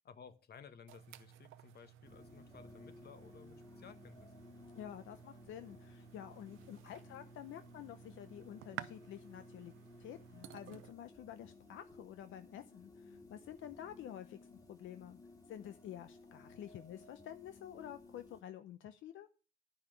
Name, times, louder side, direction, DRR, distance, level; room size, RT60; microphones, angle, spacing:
voice 1, 0.0-4.3, left 6 dB, 55° left, 1.3 m, -57 dB
sound 1, 0.9-10.9, right 12 dB, 85° right, 0.6 m, -54 dB
sound 2, 2.0-18.4, left 3 dB, 20° left, 2.3 m, -58 dB
voice 2, 4.7-9.7 10.0-15.2 15.5-19.3, left 11 dB, 80° left, 0.7 m, -50 dB
10.5 x 5.7 x 6.8 m
cardioid pair, 90°, 20 cm